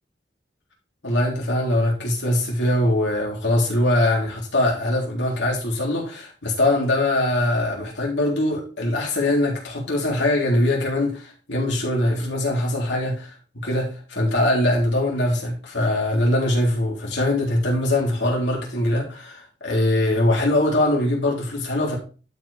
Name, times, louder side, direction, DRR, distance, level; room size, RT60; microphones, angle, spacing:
voice 1, 1.0-13.3 13.6-22.0, left 1 dB, 90° left, 3.5 m, -22 dB
12.0 x 5.1 x 3.4 m
head